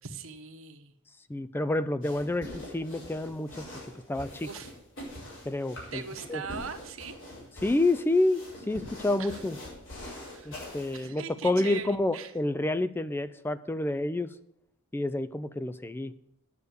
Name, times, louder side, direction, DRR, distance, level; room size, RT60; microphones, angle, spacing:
voice 1, 0.0-0.9 4.4-4.7 5.9-7.2 9.2-9.4 10.2-10.6 10.9-12.3, right 6 dB, 70° right, 6 dB, 1.2 m, -41 dB
voice 2, 1.3-3.7 4.1-4.5 5.5-6.0 6.3-6.4 7.6-9.6 10.5-14.3 14.9-16.1, left 2 dB, 10° left, 14 dB, 0.3 m, -29 dB
sound 1, 2.0-11.1, left 1 dB, 60° left, 4.9 m, -44 dB
9.7 x 6.8 x 8.1 m, 0.79 s
head